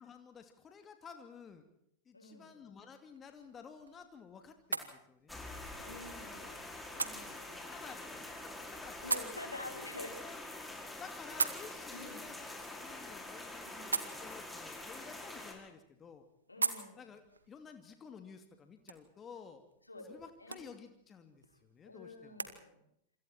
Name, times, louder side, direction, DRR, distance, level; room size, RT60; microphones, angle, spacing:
voice 1, 0.0-1.6 2.1-5.5 5.9-6.2 7.7-9.0 10.2-16.2 17.0-17.2 17.5-19.6 20.1-22.4, left 6 dB, 25° left, 7 dB, 2.6 m, -53 dB
voice 2, 2.1-2.5 5.8-6.6 6.9-7.8 9.0-10.1 11.9-12.2 13.6-14.0 16.5-17.0 19.9-20.7 21.8-22.8, left 2 dB, 80° left, 3 dB, 5.5 m, -48 dB
sound 1, 3.1-22.5, right 4 dB, 75° right, 2.1 m, -44 dB
sound 2, 5.3-15.5, left 2 dB, 5° left, 5.5 m, -46 dB
27.5 x 26.5 x 4.4 m, 0.74 s
figure-of-eight pair, 90°, 0 cm